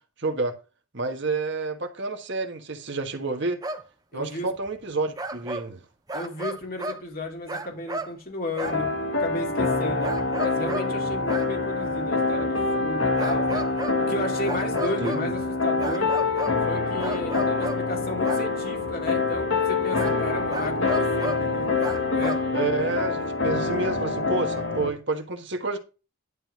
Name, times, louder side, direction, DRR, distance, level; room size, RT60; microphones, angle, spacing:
voice 1, 0.2-0.5 0.9-3.6 4.1-5.8 15.0-15.3 22.5-25.8, right 3 dB, 55° right, 1.4 m, -29 dB
sound 1, 3.6-3.8 4.7-4.8 5.2-5.7 6.1-7.0 7.5-8.1 8.6-8.8 10.0-10.9 11.3-11.5 13.2-14.0 14.4-15.3 15.8-16.6 17.0-17.9 18.2-18.5 20.0-20.2 20.5-21.5 21.8-22.5 23.2-23.3, right 2 dB, 15° right, 0.7 m, -33 dB
voice 2, 4.1-4.5 6.1-8.9 9.2-10.1 10.4-13.7 14.0-16.1 16.6-21.8 22.1-22.4, left 1 dB, 45° left, 2.7 m, -34 dB
sound 2, 8.6-24.9, left 3 dB, 65° left, 2.1 m, -26 dB
11.0 x 3.9 x 6.2 m
head